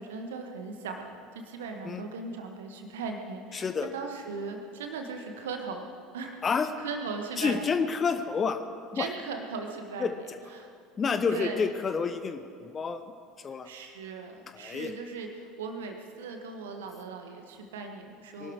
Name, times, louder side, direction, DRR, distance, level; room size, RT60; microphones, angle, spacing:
voice 1, 0.0-3.6 3.9-5.8 6.1-6.3 6.8-7.6 9.0-10.1 10.6-10.7 11.3-11.7 13.6-18.5, right 4 dB, 65° right, 4 dB, 1.6 m, -38 dB
voice 2, 3.5-3.9 6.4-6.7 7.4-8.6 8.9-9.1 10.0-10.4 11.0-13.0 13.4-13.7 14.5-14.9 18.4-18.5, left 5 dB, 30° left, 10 dB, 1.0 m, -29 dB
23.0 x 12.0 x 4.8 m, 2.3 s
figure-of-eight pair, 65°, 0 cm